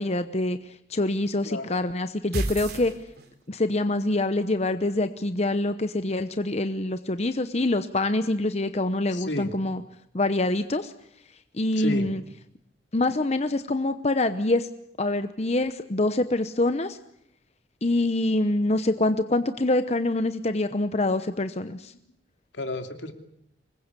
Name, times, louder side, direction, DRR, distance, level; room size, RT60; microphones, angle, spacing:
voice 1, 0.0-2.9 3.5-9.8 10.1-10.9 11.5-12.2 12.9-14.7 15.0-17.0 17.8-21.9, left 2 dB, 35° left, 10 dB, 0.9 m, -25 dB
sound 1, 2.3-3.6, right 1 dB, 60° right, 3.1 m, -31 dB
voice 2, 9.1-9.5 11.8-12.1 22.5-23.1, left 2 dB, 80° left, 6 dB, 2.9 m, -32 dB
25.5 x 21.0 x 8.3 m, 0.74 s
head